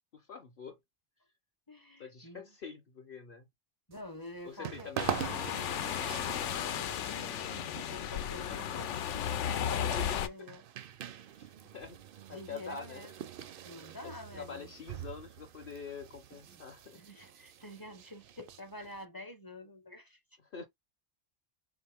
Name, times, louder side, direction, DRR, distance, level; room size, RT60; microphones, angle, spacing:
voice 1, 0.1-0.8 2.0-3.5 4.4-5.8 8.4-8.8 9.9-10.3 11.4-12.0 12.3-13.0 14.0-17.0 20.5-20.7, left 5 dB, 55° left, 0.9 m, -46 dB
voice 2, 1.7-2.5 3.9-5.6 6.1-11.0 12.3-13.1 13.6-14.7 16.3-16.6 16.9-20.2, left 1 dB, 25° left, 0.6 m, -48 dB
sound 1, 3.9-19.0, right 9 dB, 60° right, 0.6 m, -44 dB
sound 2, 5.0-10.3, left 9 dB, 90° left, 0.9 m, -34 dB
4.1 x 3.1 x 3.4 m
omnidirectional pair, 1.2 m